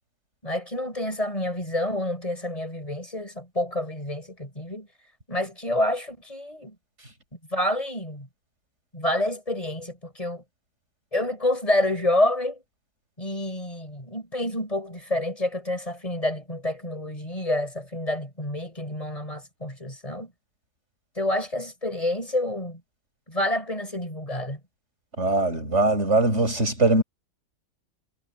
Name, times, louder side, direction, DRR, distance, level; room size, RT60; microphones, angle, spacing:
voice 1, 0.4-4.9 5.3-6.7 7.5-8.3 8.9-10.4 11.1-12.6 13.2-20.3 21.2-22.8 23.3-24.6, left 1 dB, 20° left, 6.7 m, -28 dB
voice 2, 25.2-27.0, right 2 dB, 50° right, 7.3 m, -21 dB
omnidirectional pair, 1.6 m